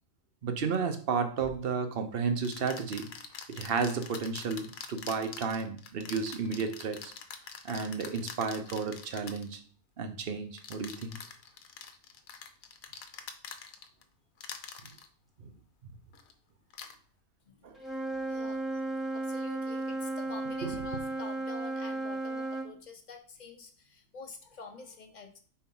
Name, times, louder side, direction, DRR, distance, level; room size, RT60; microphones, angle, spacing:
voice 1, 0.4-3.1 3.5-7.1 7.6-9.6 10.0-11.2 15.4-15.5 15.8-15.9 17.6-17.8 20.6-20.7, right 5 dB, 50° right, 0.8 m, -32 dB
sound 1, 1.4-1.6 2.4-9.6 10.6-14.0 14.4-15.1 16.1-16.3 16.7-16.9, left 7 dB, 75° left, 1.1 m, -45 dB
Wind instrument woodwind instrument, 17.8-22.7, right 2 dB, ahead, 1.0 m, -34 dB
voice 2, 18.1-25.4, left 4 dB, 40° left, 0.8 m, -48 dB
4.6 x 4.3 x 5.4 m
omnidirectional pair, 1.5 m